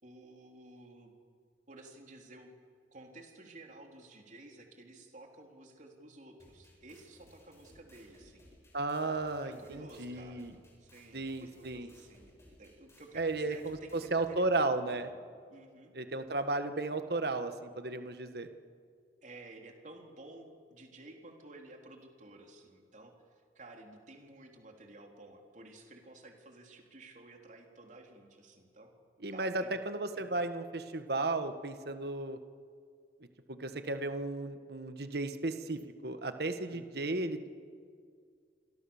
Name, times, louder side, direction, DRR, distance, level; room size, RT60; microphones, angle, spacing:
voice 1, 0.0-1.1 1.7-2.5 2.9-8.5 9.4-10.5 10.8-12.3 12.6-15.2 15.5-15.9 19.2-23.1 23.6-28.9 29.3-29.8 30.2-30.4 36.7-37.1, right 2 dB, 45° right, 2 dB, 3.5 m, -53 dB
sound 1, 6.4-14.4, equal, 15° left, 7.7 m, -61 dB
voice 2, 8.7-10.5 11.1-11.9 13.1-15.1 15.9-18.5 29.2-32.4 33.5-37.5, right 2 dB, 60° right, 9 dB, 1.4 m, -34 dB
28.0 x 23.5 x 7.2 m, 2.1 s
head